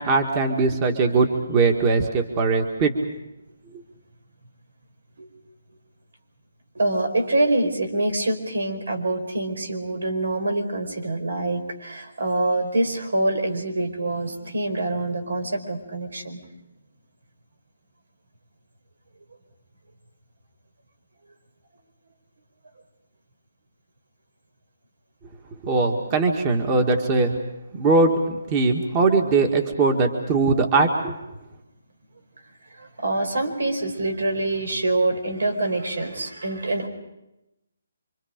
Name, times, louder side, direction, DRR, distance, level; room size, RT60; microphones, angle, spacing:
voice 1, 0.0-2.9 25.6-27.3 27.7-31.1, right 3 dB, 25° right, 3 dB, 1.8 m, -20 dB
voice 2, 6.7-16.4 32.7-36.9, right 2 dB, 85° right, 6 dB, 4.7 m, -25 dB
28.0 x 25.0 x 5.2 m, 0.92 s
hypercardioid pair, 165°, 0 cm